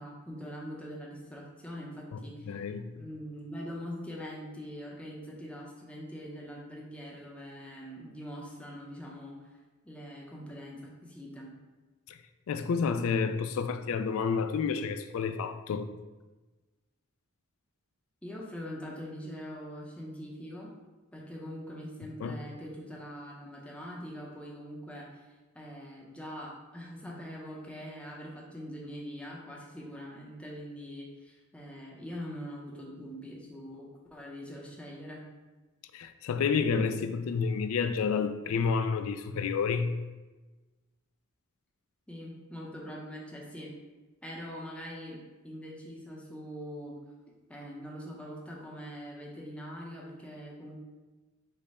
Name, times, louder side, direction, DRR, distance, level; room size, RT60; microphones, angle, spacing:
voice 1, 0.0-2.6 2.9-9.6 9.8-11.5 18.2-20.7 21.1-25.3 25.5-35.2 42.1-43.7 44.2-47.0 47.5-50.8, equal, 5° left, 0.6 m, -43 dB
voice 2, 2.5-3.0 12.1-12.2 12.5-15.9 22.2-22.4 35.9-40.0, left 5 dB, 70° left, 0.3 m, -30 dB
5.1 x 2.2 x 4.1 m
head